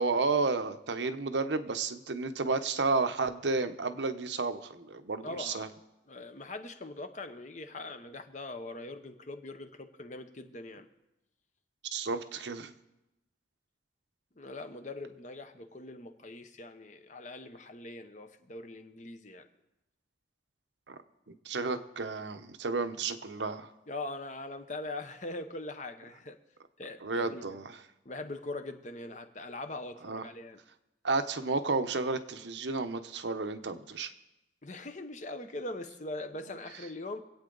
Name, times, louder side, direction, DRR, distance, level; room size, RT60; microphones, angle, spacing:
voice 1, 0.0-5.7 11.9-12.7 20.9-21.0 21.3-23.7 27.0-27.8 30.0-30.2 31.0-34.1, right 3 dB, 80° right, 9 dB, 0.8 m, -32 dB
voice 2, 5.2-5.7 6.1-10.9 14.4-19.5 23.9-26.4 26.8-27.5 28.0-30.6 34.6-37.2, left 2 dB, 40° left, 8 dB, 0.9 m, -42 dB
25.0 x 8.7 x 3.9 m, 0.94 s
head